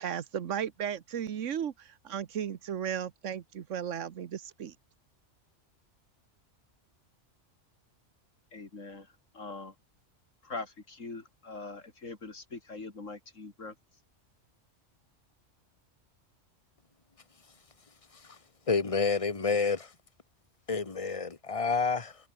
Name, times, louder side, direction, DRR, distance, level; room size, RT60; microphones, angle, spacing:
voice 1, 0.0-4.7, right 9 dB, 75° right, 1.3 m, -35 dB
voice 2, 8.5-9.8 10.4-13.8, left 3 dB, 90° left, 3.7 m, -42 dB
voice 3, 18.7-19.9 20.7-22.2, left 4 dB, 25° left, 1.5 m, -29 dB
omnidirectional pair, 1.3 m